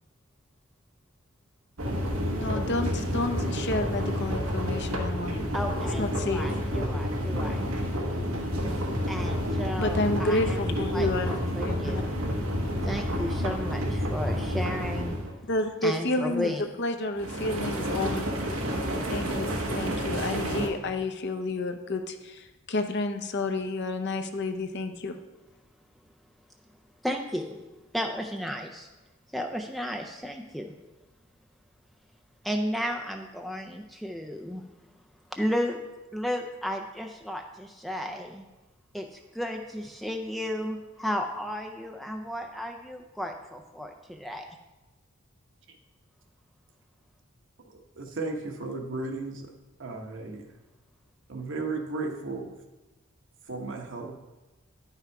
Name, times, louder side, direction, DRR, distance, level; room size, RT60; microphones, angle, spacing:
sound 1, 1.8-15.3 17.2-20.7, equal, 80° right, 1.2 m, -29 dB
voice 1, 2.4-5.5 6.0-6.4 9.8-11.9 15.5-18.2 19.1-25.2, left 2 dB, 55° left, 7 dB, 0.7 m, -30 dB
voice 2, 5.5-7.6 9.1-12.1 12.8-15.2 15.8-16.6 27.0-27.6 27.9-28.9 29.3-30.7 32.4-34.6 35.3-35.8 36.1-38.4 38.9-44.5, equal, ahead, 3 dB, 0.4 m, -33 dB
voice 3, 47.6-49.5 49.8-50.5 51.3-52.5 53.5-54.1, right 3 dB, 60° right, 2 dB, 1.1 m, -35 dB
10.5 x 5.7 x 4.6 m, 1.1 s
head